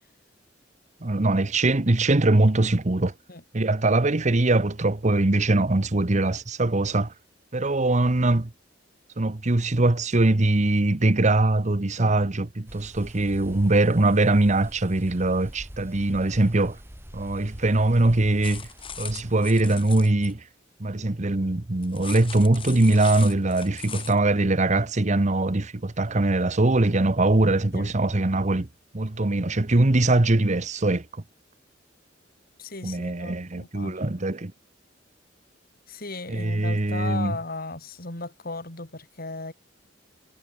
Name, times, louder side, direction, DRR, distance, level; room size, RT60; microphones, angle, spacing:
voice 1, 1.0-3.1 3.5-7.1 7.5-8.5 9.2-16.8 17.1-18.7 19.0-20.4 20.8-28.7 28.9-31.1 32.8-34.5 36.3-37.4, right 2 dB, 40° right, 1.1 m, -22 dB
sound 1, 12.7-19.5, equal, 15° right, 3.5 m, -45 dB
sound 2, 18.4-20.3 21.8-24.2, left 7 dB, 30° left, 5.0 m, -39 dB
voice 2, 32.6-34.1 35.9-39.5, left 3 dB, 55° left, 4.3 m, -36 dB
head